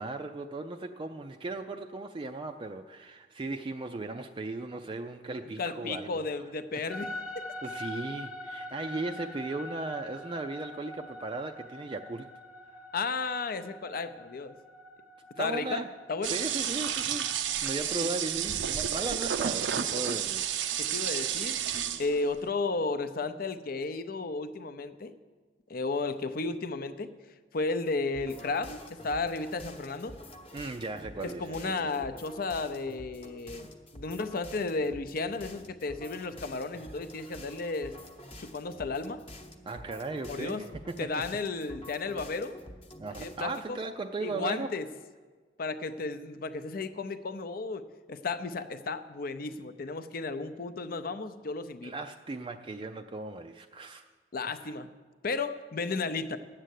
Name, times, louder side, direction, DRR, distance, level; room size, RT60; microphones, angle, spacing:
voice 1, 0.0-6.3 6.7-6.8 7.6-12.3 12.7-12.9 15.4-15.9 16.3-21.1 30.5-32.1 39.7-41.1 43.0-44.7 51.8-54.1 54.6-54.7, right 3 dB, 30° right, 5 dB, 0.4 m, -37 dB
voice 2, 5.6-7.4 12.9-14.6 15.4-15.8 16.1-16.4 17.9-18.1 20.8-21.6 22.0-25.1 25.7-27.1 27.5-30.2 31.2-33.7 33.9-38.0 38.4-39.2 40.3-40.7 41.0-42.6 43.2-43.8 44.2-44.9 45.6-51.9 54.3-54.9 55.2-56.4, left 3 dB, 55° left, 11 dB, 0.6 m, -33 dB
sound 1, 6.9-19.2, left 1 dB, 5° right, 0.8 m, -44 dB
sound 2, 16.2-22.3, right 9 dB, 90° right, 0.6 m, -31 dB
sound 3, 28.1-43.7, left 1 dB, 30° left, 1.0 m, -48 dB
10.0 x 7.6 x 8.2 m, 1.4 s
head